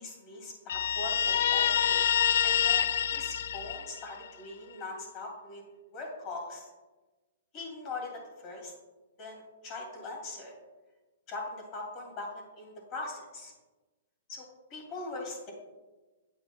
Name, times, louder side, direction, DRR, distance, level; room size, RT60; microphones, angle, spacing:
voice 1, 0.0-2.0 2.4-5.6 5.9-6.7 7.5-8.7 9.2-10.5 11.3-12.3 12.6-13.5 14.3-14.4 14.7-15.5, left 3 dB, 30° left, 0 dB, 2.5 m, -41 dB
Guitar, 0.7-4.3, left 9 dB, 65° left, 0.3 m, -27 dB
8.6 x 8.4 x 2.2 m, 1.2 s
hypercardioid pair, 150°, 0 cm